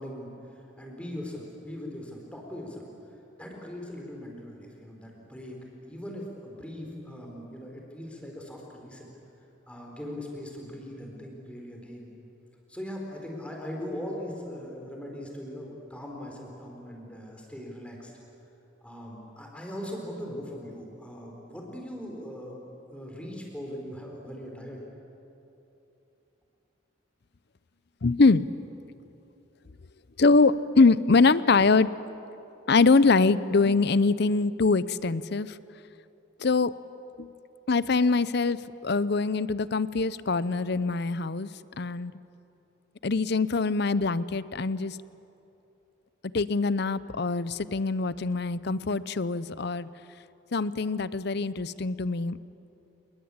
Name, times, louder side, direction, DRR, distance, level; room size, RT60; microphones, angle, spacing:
voice 1, 0.0-2.9 3.4-9.1 9.7-12.1 12.7-18.1 18.8-24.8, equal, 5° left, 0 dB, 4.5 m, -40 dB
voice 2, 28.0-28.5 30.2-31.9 32.7-35.6 36.4-36.7 37.2-37.3 37.7-41.5 41.8-42.1 43.0-45.0 46.3-49.9 50.5-52.4, left 3 dB, 55° left, 17 dB, 0.6 m, -23 dB
28.5 x 21.0 x 8.8 m, 3.0 s
head